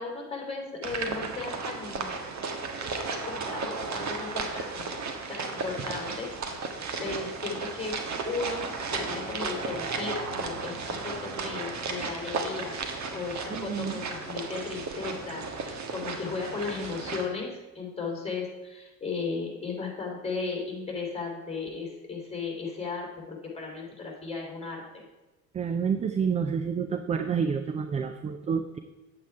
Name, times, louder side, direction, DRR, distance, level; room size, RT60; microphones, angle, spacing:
voice 1, 0.0-2.1 2.7-3.0 3.2-5.0 5.3-6.3 7.0-25.0, left 4 dB, 10° left, -1 dB, 3.4 m, -36 dB
sound 1, 0.8-17.3, right 4 dB, 35° right, 1.5 m, -34 dB
voice 2, 13.5-13.9 25.5-28.8, right 6 dB, 15° right, 8 dB, 0.4 m, -29 dB
9.4 x 8.3 x 4.6 m, 1.1 s
hypercardioid pair, 70°, 49 cm